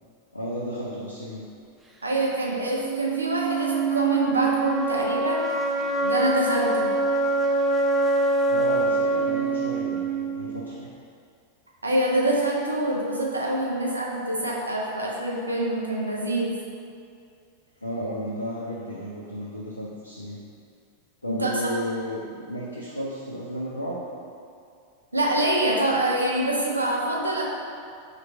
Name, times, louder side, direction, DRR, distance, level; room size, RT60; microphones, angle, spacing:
voice 1, 0.3-1.4 8.5-10.9 17.8-20.4 21.2-24.1, equal, 85° left, -5 dB, 0.4 m, -33 dB
voice 2, 2.0-5.4 6.0-6.9 11.8-16.6 21.3-21.5 25.1-27.4, right 1 dB, 80° right, -3 dB, 0.6 m, -25 dB
sound 1, 2.8-10.8, right 3 dB, 10° right, 0.3 m, -25 dB
3.1 x 2.5 x 4.1 m, 2.3 s
figure-of-eight pair, 90°, 0 cm